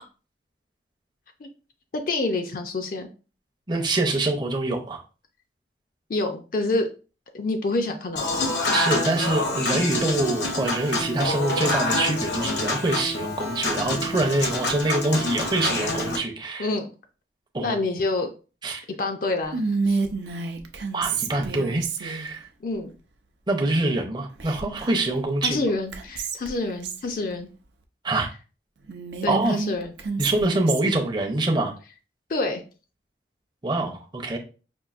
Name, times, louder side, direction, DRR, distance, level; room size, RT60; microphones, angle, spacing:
voice 1, 1.9-3.1 6.1-6.9 7.3-8.4 16.6-16.9 17.6-18.3 19.0-20.0 22.6-22.9 25.4-27.5 29.2-29.9 32.3-32.6, left 2 dB, 50° left, 6 dB, 0.4 m, -27 dB
voice 2, 3.7-5.0 8.7-16.7 17.5-17.8 18.6-18.8 20.9-22.5 23.5-25.6 28.0-28.3 29.3-29.6 30.2-31.7 33.6-34.4, right 2 dB, 25° right, 2 dB, 0.6 m, -25 dB
Human voice / Acoustic guitar / Piano, 8.2-16.2, left 2 dB, 75° left, 0.9 m, -27 dB
Whispering, 19.5-22.4 24.4-25.1 25.4-25.5 25.9-27.1 28.9-31.0, right 4 dB, 80° right, 0.5 m, -29 dB
5.2 x 2.5 x 2.4 m, 0.35 s
head